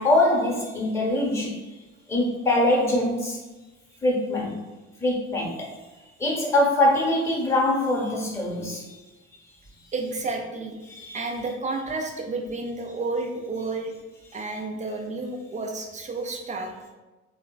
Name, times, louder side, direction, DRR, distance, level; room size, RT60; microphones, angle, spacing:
voice 1, 0.0-1.6 2.1-3.4 4.0-4.6 5.0-5.8 6.2-9.0 10.9-11.2, left 1 dB, 10° left, -3 dB, 1.0 m, -23 dB
voice 2, 9.9-10.8 11.1-13.9 14.3-16.7, right 3 dB, 20° right, 2 dB, 0.4 m, -31 dB
3.1 x 2.1 x 2.3 m, 1.1 s
hypercardioid pair, 55°, 34 cm